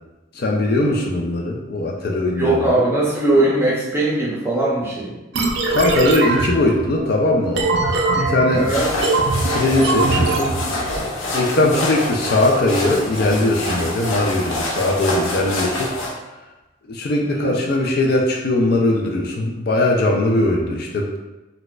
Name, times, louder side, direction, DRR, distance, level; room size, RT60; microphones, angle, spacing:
voice 1, 0.4-2.6 5.7-7.7 8.1-8.7 9.5-10.5 11.3-15.9 16.9-21.2, left 2 dB, 50° left, 0 dB, 0.4 m, -20 dB
voice 2, 2.3-5.1 8.5-8.9 11.5-11.8 17.2-17.5, right 2 dB, 10° right, -6 dB, 0.6 m, -20 dB
sound 1, 5.3-11.1, right 3 dB, 60° right, 0.4 m, -21 dB
sound 2, 8.5-16.1, left 1 dB, 90° left, 0.6 m, -26 dB
4.1 x 2.2 x 2.3 m, 1.1 s
head